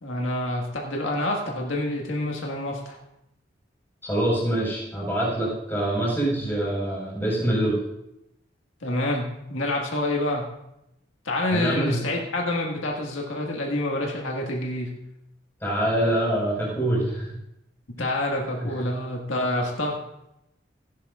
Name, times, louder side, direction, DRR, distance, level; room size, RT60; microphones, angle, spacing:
voice 1, 0.0-3.0 8.8-10.5 11.2-14.9 18.0-20.0, left 1 dB, 85° left, -1 dB, 1.7 m, -27 dB
voice 2, 4.0-7.7 11.5-12.0 15.6-17.3 18.6-18.7, right 1 dB, 10° left, -5 dB, 4.5 m, -25 dB
16.0 x 10.5 x 2.4 m, 0.84 s
head